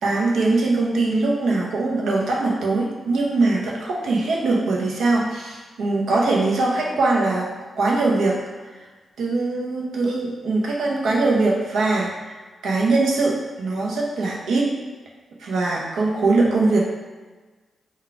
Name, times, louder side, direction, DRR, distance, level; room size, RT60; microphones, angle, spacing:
voice 1, 0.0-7.5 7.8-8.4 9.2-12.3 12.6-14.7 15.4-16.8, right 3 dB, 80° right, -3 dB, 0.7 m, -21 dB
3.7 x 2.3 x 4.5 m, 1.3 s
supercardioid pair, 40°, 0 cm